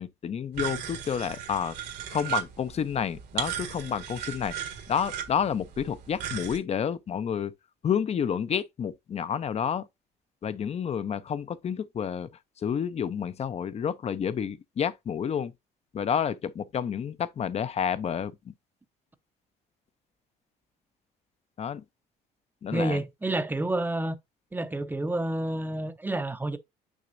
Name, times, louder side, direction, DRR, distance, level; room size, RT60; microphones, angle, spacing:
voice 1, 0.0-1.8 2.1-4.5 4.9-7.5 7.8-9.9 10.4-12.3 12.6-15.5 15.9-18.5 21.6-21.8 22.6-23.0, left 8 dB, 40° left, 0.7 m, -30 dB
sound 1, 0.5-6.6, right 10 dB, 75° right, 1.8 m, -36 dB
voice 2, 22.7-24.2 24.5-26.6, right 1 dB, 10° right, 0.7 m, -29 dB
6.3 x 5.9 x 2.7 m
cardioid pair, 110°, 17 cm